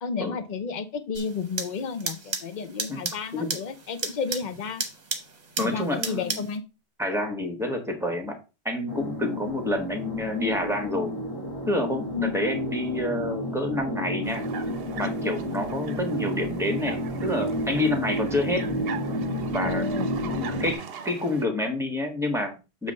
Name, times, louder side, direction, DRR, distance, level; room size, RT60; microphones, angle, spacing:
voice 1, 0.0-4.8 5.6-6.6 12.1-12.4 19.6-20.1, left 5 dB, 45° left, 10 dB, 0.9 m, -32 dB
sound 1, 1.1-6.6, right 4 dB, 40° right, 1.2 m, -35 dB
voice 2, 2.9-3.5 5.6-6.4 7.0-8.4 8.6-11.1 11.7-14.4 15.0-18.7 19.4-19.8 20.3-22.9, left 1 dB, 5° right, 4 dB, 1.5 m, -28 dB
sound 2, 8.9-20.7, equal, 20° left, 1.4 m, -31 dB
sound 3, 14.2-21.5, right 7 dB, 65° right, 0.9 m, -41 dB
7.2 x 3.3 x 5.3 m, 0.30 s
omnidirectional pair, 1.1 m